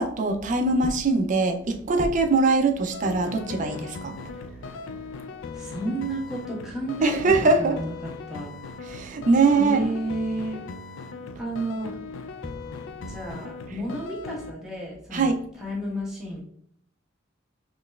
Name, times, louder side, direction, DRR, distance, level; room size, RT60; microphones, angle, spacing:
voice 1, 0.0-4.1 7.0-7.8 8.9-9.8 15.1-15.4, right 3 dB, 40° right, 0.4 m, -22 dB
sound 1, 2.9-14.5, left 4 dB, 80° left, 0.3 m, -39 dB
voice 2, 4.3-4.7 5.5-7.3 7.6-8.5 9.5-10.6 11.4-11.9 13.1-16.4, right 1 dB, 5° right, 1.1 m, -32 dB
3.9 x 3.1 x 2.3 m
head